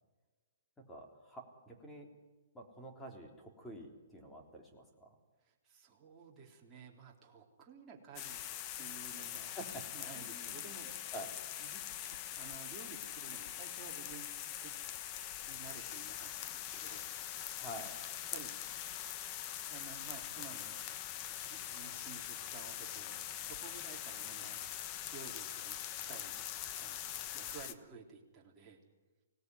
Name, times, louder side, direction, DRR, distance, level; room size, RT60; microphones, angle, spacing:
voice 1, 0.9-2.1 2.5-5.2 9.4-9.8 10.1-10.6 11.1-11.3 17.5-18.0, right 1 dB, 5° left, 1 dB, 3.6 m, -48 dB
voice 2, 5.4-8.4 8.8-9.5 9.9-11.2 11.6-14.3 14.6-14.8 15.4-17.2 17.4-17.7 18.3-18.5 19.7-20.8 21.3-24.8 25.1-26.4 26.8-27.0 27.3-28.8, right 6 dB, 15° right, -3 dB, 3.9 m, -54 dB
sound 1, 8.2-27.7, left 11 dB, 30° left, 1.1 m, -43 dB
25.5 x 18.0 x 9.8 m, 1.2 s
hypercardioid pair, 155°, 0 cm